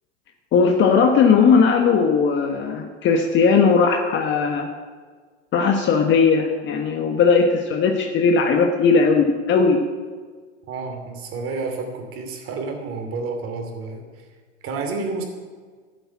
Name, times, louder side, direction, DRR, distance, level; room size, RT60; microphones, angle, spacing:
voice 1, 0.5-4.7 5.5-9.8, left 5 dB, 30° left, 4 dB, 1.3 m, -18 dB
voice 2, 10.7-14.2 14.6-15.2, right 3 dB, 35° right, 4 dB, 2.9 m, -30 dB
12.5 x 8.0 x 8.6 m, 1.5 s
hypercardioid pair, 110°, 37 cm